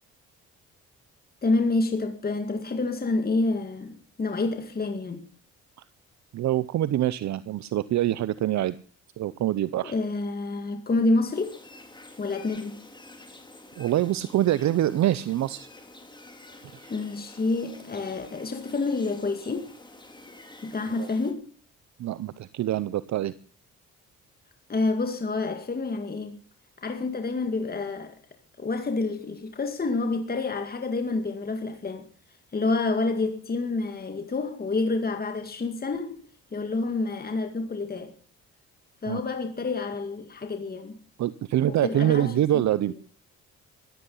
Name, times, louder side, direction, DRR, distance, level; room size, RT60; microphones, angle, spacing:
voice 1, 1.4-5.2 9.8-11.6 12.2-12.8 16.9-19.6 20.6-21.5 24.7-26.4 26.8-28.2 28.6-32.1 32.5-36.2 36.5-38.1 39.0-41.0 41.7-42.6, left 3 dB, 30° left, 2.1 m, -28 dB
voice 2, 6.3-8.7 9.2-9.9 13.8-15.7 16.7-16.9 21.0-21.1 22.0-23.3 39.1-39.2 41.2-42.9, right 13 dB, 65° right, 0.7 m, -25 dB
sound 1, 11.3-21.3, left 2 dB, 15° left, 3.4 m, -49 dB
15.0 x 12.5 x 5.6 m
cardioid pair, 90°, 30 cm